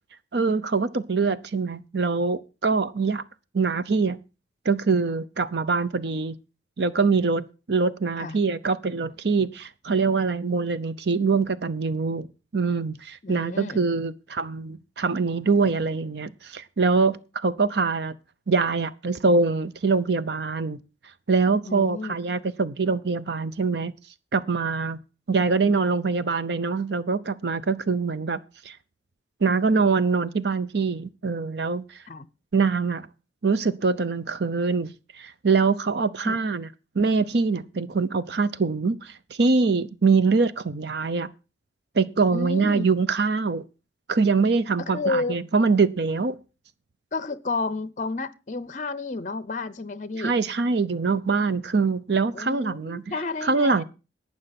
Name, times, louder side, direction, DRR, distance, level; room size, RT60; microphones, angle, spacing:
voice 1, 0.3-3.2 3.5-4.2 4.6-6.4 6.8-12.3 12.5-18.1 18.5-20.8 21.3-23.9 24.3-25.0 25.3-28.4 28.6-28.8 29.4-32.0 32.5-33.1 33.4-36.7 36.9-41.3 41.9-43.6 44.1-46.4 50.2-53.1 53.4-53.8, right 4 dB, 60° right, 0.6 m, -24 dB
voice 2, 13.2-13.8 21.6-22.2 32.1-32.3 36.2-36.3 42.3-42.9 44.9-45.3 47.1-50.4 52.3-53.8, left 3 dB, 40° left, 0.6 m, -31 dB
12.0 x 8.6 x 5.9 m
head